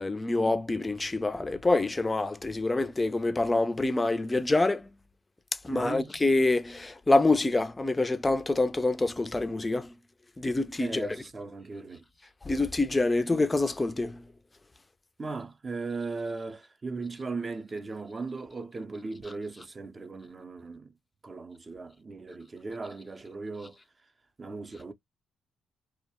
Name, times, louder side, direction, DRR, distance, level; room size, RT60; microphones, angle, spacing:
voice 1, 0.0-4.9 5.6-9.9 10.4-11.1 12.5-14.2, left 2 dB, 20° left, 0.4 m, -26 dB
voice 2, 5.7-6.1 10.8-12.0 15.2-20.9 21.2-23.8 24.4-24.9, right 3 dB, 30° right, 0.5 m, -37 dB
2.3 x 2.0 x 2.8 m
cardioid pair, 90°, 0 cm